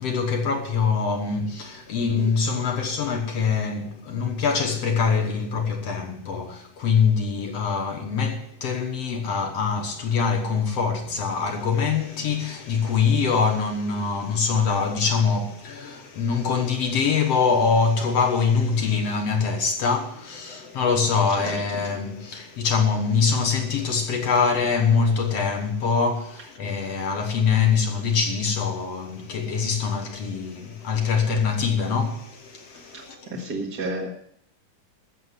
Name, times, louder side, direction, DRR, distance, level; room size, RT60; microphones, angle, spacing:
voice 1, 0.0-33.3, left 5 dB, 60° left, 2.1 m, -24 dB
voice 2, 32.7-34.1, right 2 dB, 40° right, 1.7 m, -32 dB
14.5 x 7.1 x 9.6 m
omnidirectional pair, 3.7 m